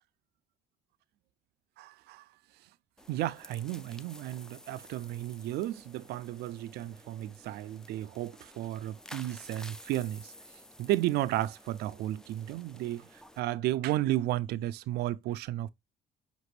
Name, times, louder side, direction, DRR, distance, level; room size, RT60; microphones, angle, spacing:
voice 1, 1.8-2.2 3.1-10.3 10.8-15.7, right 14 dB, 75° right, 0.4 m, -33 dB
sound 1, 3.0-13.4, left 1 dB, 5° left, 0.3 m, -52 dB
5.9 x 2.5 x 3.2 m
cardioid pair, 110°, 17 cm